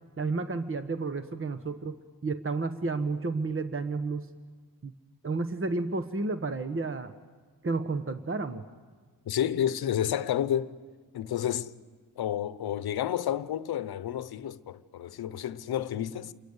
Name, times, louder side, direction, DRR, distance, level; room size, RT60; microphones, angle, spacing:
voice 1, 0.2-4.3 4.8-4.9 5.2-7.1 7.6-8.6, right 3 dB, 35° right, 1.4 m, -31 dB
voice 2, 9.3-10.8 11.1-11.7 12.2-16.3, left 10 dB, 80° left, 0.9 m, -30 dB
29.0 x 22.0 x 8.2 m
supercardioid pair, 45°, 37 cm